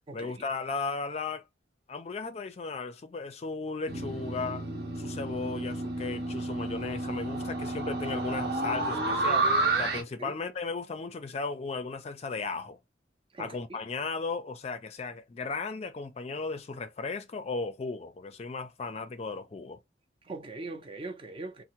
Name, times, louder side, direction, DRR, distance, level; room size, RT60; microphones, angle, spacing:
voice 1, 0.1-1.4 1.9-4.7 5.0-9.5 9.8-12.8 13.4-19.8, left 4 dB, 35° left, 0.4 m, -36 dB
sound 1, 3.9-10.0, right 2 dB, 70° right, 0.8 m, -30 dB
voice 2, 13.3-13.8 20.3-21.6, right 2 dB, 30° right, 0.5 m, -40 dB
3.3 x 2.0 x 2.8 m
head